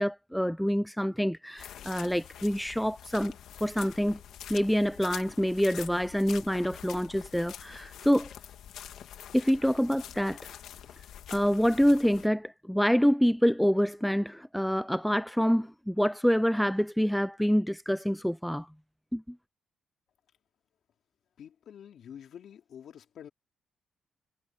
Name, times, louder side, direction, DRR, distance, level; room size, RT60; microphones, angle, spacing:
voice 1, 0.0-3.3 3.6-4.2 4.5-8.3 9.3-10.4 11.3-18.7 19.1-19.2, equal, ahead, 0.3 m, -26 dB
sound 1, 1.6-12.3, left 10 dB, 70° left, 2.1 m, -46 dB
voice 2, 21.4-23.3, left 9 dB, 55° left, 3.6 m, -47 dB
cardioid pair, 165°, 0 cm